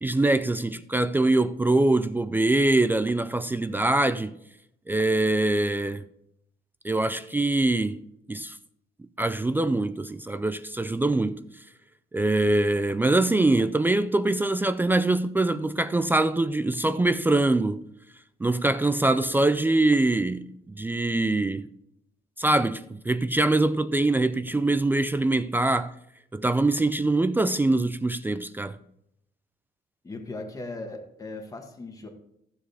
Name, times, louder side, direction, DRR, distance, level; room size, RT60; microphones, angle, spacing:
voice 1, 0.0-4.4 4.9-6.0 6.8-8.6 9.2-11.4 12.1-17.9 18.4-21.7 22.4-25.9 26.3-28.8, right 2 dB, 10° right, 0.3 m, -23 dB
voice 2, 30.0-32.1, left 2 dB, 20° left, 1.5 m, -38 dB
15.0 x 7.3 x 3.4 m
cardioid pair, 135°, 18 cm